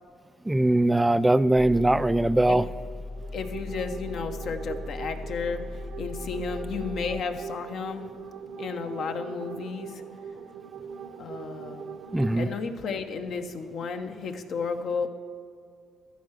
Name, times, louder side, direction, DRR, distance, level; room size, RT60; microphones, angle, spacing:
voice 1, 0.5-2.7 12.1-12.5, right 1 dB, 10° right, 16 dB, 0.3 m, -21 dB
sound 1, 1.5-7.2, left 2 dB, 5° left, 0.7 m, -38 dB
sound 2, 3.0-12.4, right 6 dB, 75° right, 0.7 m, -41 dB
voice 2, 3.3-5.6 6.0-8.1 8.6-10.0 11.2-11.9 12.3-15.1, left 5 dB, 65° left, 7 dB, 0.8 m, -33 dB
13.5 x 4.8 x 6.4 m, 2.4 s
supercardioid pair, 75°, 0 cm